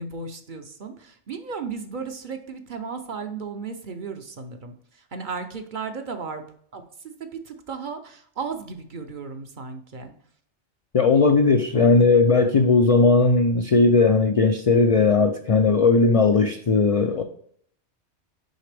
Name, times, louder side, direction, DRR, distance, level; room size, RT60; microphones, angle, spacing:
voice 1, 0.0-6.4 6.7-10.1, right 5 dB, 50° right, 6 dB, 0.7 m, -35 dB
voice 2, 10.9-17.2, left 3 dB, 60° left, 6 dB, 0.3 m, -18 dB
6.5 x 5.0 x 3.3 m, 0.62 s
omnidirectional pair, 1.2 m